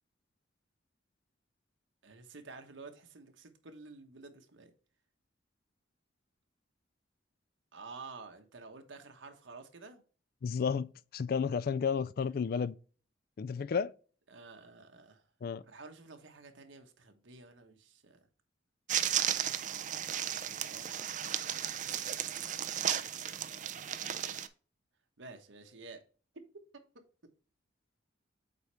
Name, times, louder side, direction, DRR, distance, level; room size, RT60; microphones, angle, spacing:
voice 1, 2.0-4.7 7.7-10.0 14.3-15.3 15.6-18.2 20.2-20.8 25.2-26.0, right 4 dB, 80° right, 1.2 m, -51 dB
voice 2, 10.4-12.7 13.4-13.9 15.4-15.6, left 6 dB, 50° left, 0.3 m, -32 dB
sound 1, 18.9-24.5, right 10 dB, 40° right, 0.5 m, -34 dB
8.0 x 4.3 x 3.4 m
head